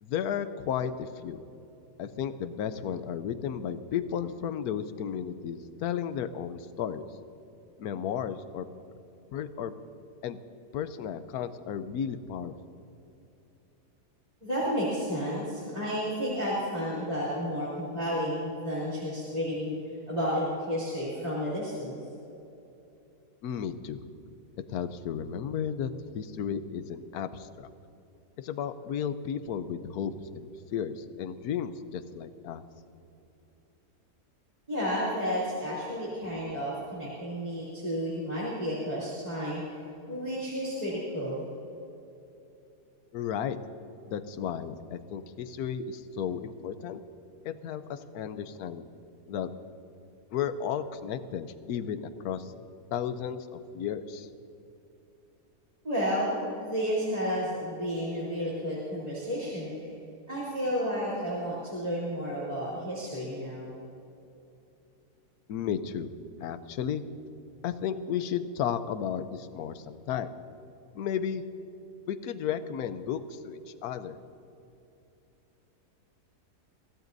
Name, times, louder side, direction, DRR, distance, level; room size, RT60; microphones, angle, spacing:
voice 1, 0.0-1.4 2.0-7.0 7.8-8.7 9.3-9.7 10.2-10.4 10.7-12.5 23.4-24.0 24.7-27.7 28.4-32.6 43.1-43.6 44.1-47.0 47.4-48.9 49.3-49.5 50.3-52.5 52.9-54.3 65.5-66.1 66.4-67.0 67.6-70.3 70.9-71.4 72.1-74.2, left 8 dB, 75° left, 11 dB, 1.2 m, -33 dB
voice 2, 14.4-19.7 20.1-22.0 34.7-39.6 40.1-41.4 55.8-59.9 60.3-63.8, equal, 25° right, -9 dB, 3.2 m, -31 dB
23.5 x 16.0 x 2.7 m, 2.8 s
omnidirectional pair, 1.7 m